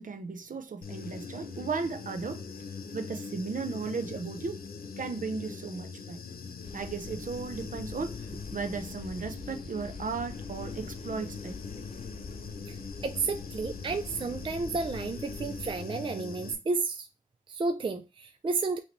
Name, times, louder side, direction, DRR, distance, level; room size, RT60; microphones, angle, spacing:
voice 1, 0.0-2.4 2.9-4.6 5.0-6.2 6.7-8.2 8.5-11.5, right 4 dB, 60° right, 0.7 m, -35 dB
Human voice / Buzz, 0.8-16.5, left 5 dB, 80° left, 0.8 m, -42 dB
sound 1, 6.6-15.8, left 4 dB, 45° left, 0.6 m, -45 dB
voice 2, 13.0-17.1 17.5-18.8, right 4 dB, 35° right, 0.4 m, -31 dB
5.5 x 2.9 x 3.1 m
wide cardioid pair, 120°, 15 cm